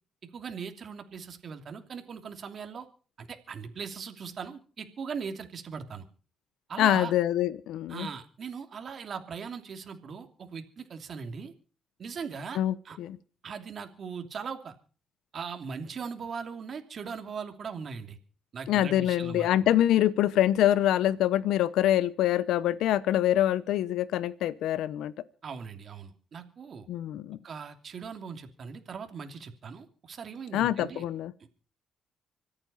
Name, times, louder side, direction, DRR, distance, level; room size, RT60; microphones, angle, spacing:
voice 1, 0.3-2.9 3.2-6.0 6.7-7.1 7.9-11.5 12.0-13.0 13.4-14.7 15.3-18.2 18.5-19.5 25.4-26.9 27.4-31.0, right 6 dB, 50° right, 5 dB, 2.8 m, -39 dB
voice 2, 6.8-8.1 12.6-13.2 18.7-25.1 26.9-27.4 30.5-31.3, left 12 dB, 85° left, 17 dB, 0.8 m, -25 dB
25.5 x 8.8 x 5.5 m, 0.39 s
cardioid pair, 90°, 0 cm